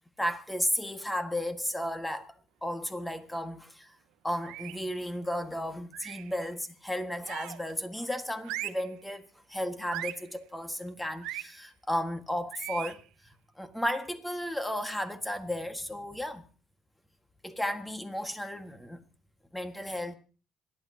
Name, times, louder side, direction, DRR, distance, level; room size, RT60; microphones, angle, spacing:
voice 1, 0.2-2.3 2.6-3.9 4.2-13.0 13.6-16.5 17.4-19.0 19.5-20.1, left 1 dB, 5° left, 1.7 m, -34 dB
sound 1, 4.4-4.9 5.9-6.4 7.2-7.7 8.4-8.9 9.9-10.3 11.2-11.5 12.5-13.0, right 15 dB, 80° right, 0.6 m, -39 dB
26.5 x 11.5 x 2.9 m
supercardioid pair, 90°, 0 cm